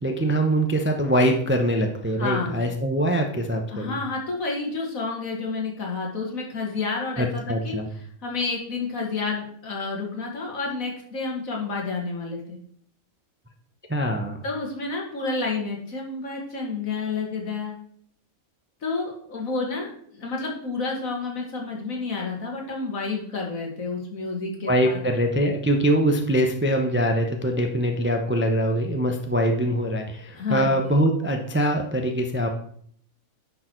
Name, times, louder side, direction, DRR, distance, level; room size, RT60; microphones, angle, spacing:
voice 1, 0.0-4.0 7.2-7.9 13.9-14.4 24.7-32.5, right 1 dB, 15° right, 4 dB, 0.5 m, -23 dB
voice 2, 2.2-2.6 3.7-7.8 8.2-12.6 14.4-17.8 18.8-25.0 30.4-30.9, left 4 dB, 70° left, -1 dB, 2.3 m, -30 dB
10.0 x 4.6 x 4.5 m, 0.62 s
omnidirectional pair, 1.5 m